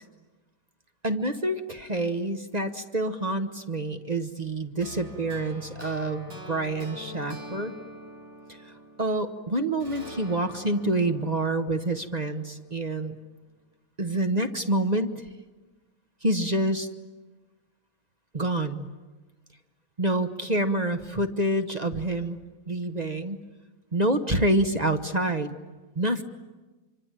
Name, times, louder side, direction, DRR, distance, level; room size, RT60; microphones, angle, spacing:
voice 1, 1.0-7.7 8.5-13.2 14.0-15.2 16.2-16.9 18.3-18.9 20.0-22.4 22.7-23.4 23.9-25.6 25.9-26.2, right 1 dB, 30° right, 7 dB, 0.9 m, -27 dB
sound 1, 4.8-9.3 9.8-12.9, equal, 80° right, 4.8 m, -44 dB
26.5 x 25.0 x 9.1 m, 1.2 s
omnidirectional pair, 2.0 m